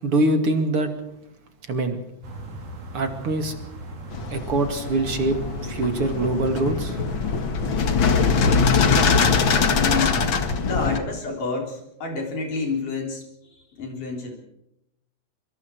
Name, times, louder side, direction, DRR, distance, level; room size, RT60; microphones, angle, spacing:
voice 1, 0.0-0.9 1.7-2.0 2.9-3.6 4.3-7.0, right 2 dB, 45° right, 7 dB, 2.9 m, -24 dB
sound 1, 2.2-10.5, right 2 dB, 65° right, 5.1 m, -38 dB
sound 2, 4.1-11.0, left 5 dB, 45° left, 2.0 m, -22 dB
voice 2, 9.5-10.3 10.7-14.4, left 4 dB, 70° left, 2 dB, 5.3 m, -29 dB
25.5 x 24.0 x 4.7 m, 0.81 s
omnidirectional pair, 3.8 m